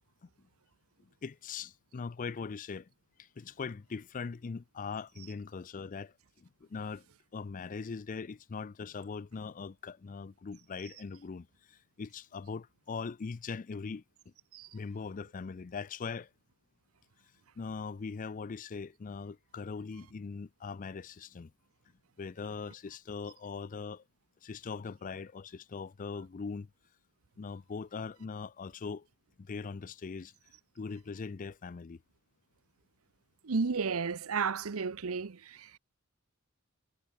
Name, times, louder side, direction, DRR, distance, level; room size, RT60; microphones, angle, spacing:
voice 1, 1.2-2.9 3.2-7.1 7.3-14.0 14.7-16.3 17.6-21.5 22.2-24.0 24.4-26.7 27.4-29.1 29.4-30.3 30.8-32.0, left 5 dB, 40° left, 0.4 m, -41 dB
voice 2, 33.4-35.7, right 5 dB, 85° right, 0.7 m, -32 dB
head